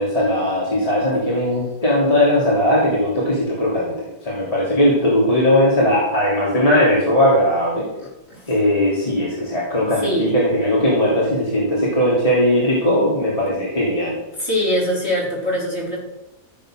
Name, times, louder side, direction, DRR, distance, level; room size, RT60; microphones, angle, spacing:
voice 1, 0.0-7.8 8.5-14.2, left 1 dB, 20° left, -5 dB, 3.1 m, -18 dB
voice 2, 8.0-8.5 10.0-10.3 14.4-16.0, left 1 dB, 40° left, -4 dB, 4.5 m, -23 dB
14.5 x 7.6 x 6.5 m, 0.92 s
omnidirectional pair, 1.7 m